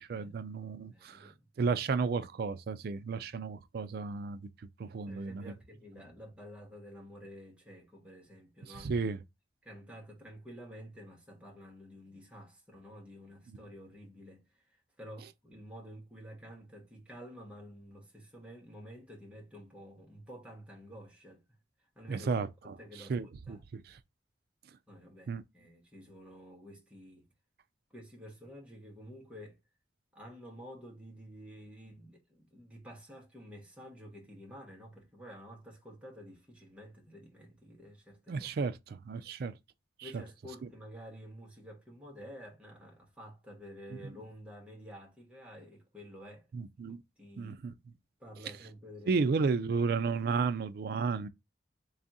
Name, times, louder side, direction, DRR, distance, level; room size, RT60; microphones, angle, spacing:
voice 1, 0.0-4.5 4.8-5.4 8.8-9.2 22.1-22.8 23.1-24.0 25.3-25.4 38.3-39.5 40.0-40.2 46.5-47.0 47.4-47.7 49.1-51.3, right 4 dB, 55° right, 0.3 m, -33 dB
voice 2, 0.9-1.5 5.1-8.9 9.6-21.4 21.9-22.3 22.6-23.6 24.9-27.2 27.9-29.6 30.1-38.5 39.2-39.3 40.0-46.5 46.9-47.7 48.2-49.1, equal, 5° right, 0.9 m, -50 dB
3.5 x 2.4 x 4.0 m
head